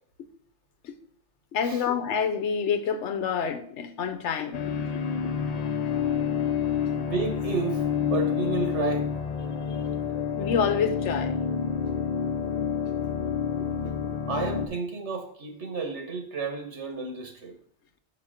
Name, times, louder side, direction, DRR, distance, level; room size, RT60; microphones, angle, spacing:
voice 1, 1.5-5.0 10.4-11.4 13.8-14.2, left 6 dB, 90° left, 1.0 m, -28 dB
sound 1, 4.5-14.7, left 7 dB, 50° left, 0.5 m, -28 dB
voice 2, 6.9-9.1 14.3-17.6, right 4 dB, 80° right, 1.6 m, -31 dB
6.0 x 4.8 x 4.9 m
omnidirectional pair, 1.2 m